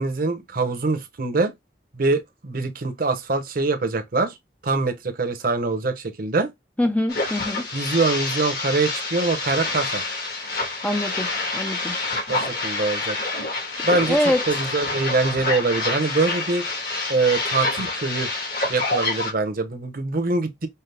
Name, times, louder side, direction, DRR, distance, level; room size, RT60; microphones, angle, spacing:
voice 1, 0.0-1.5 1.9-4.4 4.6-6.5 7.7-10.0 12.3-13.2 13.8-14.2 14.5-16.7 17.1-18.3 18.7-20.7, right 3 dB, 50° right, 0.8 m, -24 dB
voice 2, 6.8-7.7 10.8-12.0 14.0-14.4, left 1 dB, 10° left, 0.4 m, -24 dB
sound 1, 7.1-19.3, left 3 dB, 60° left, 1.5 m, -27 dB
5.5 x 2.0 x 3.3 m
head